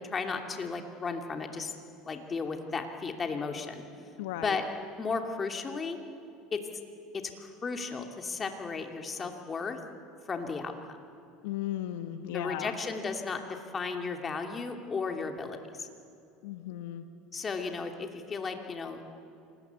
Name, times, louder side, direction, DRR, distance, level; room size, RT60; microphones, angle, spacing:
voice 1, 0.1-1.7 2.0-3.8 4.4-4.6 5.0-6.0 6.5-6.6 7.1-9.8 10.3-11.0 12.3-15.9 17.3-19.0, left 4 dB, 25° left, 4 dB, 2.7 m, -34 dB
voice 2, 4.2-4.6 11.4-12.8 16.4-17.1, left 12 dB, 80° left, 8 dB, 1.2 m, -36 dB
27.5 x 19.5 x 8.3 m, 2.6 s
supercardioid pair, 105°, 0 cm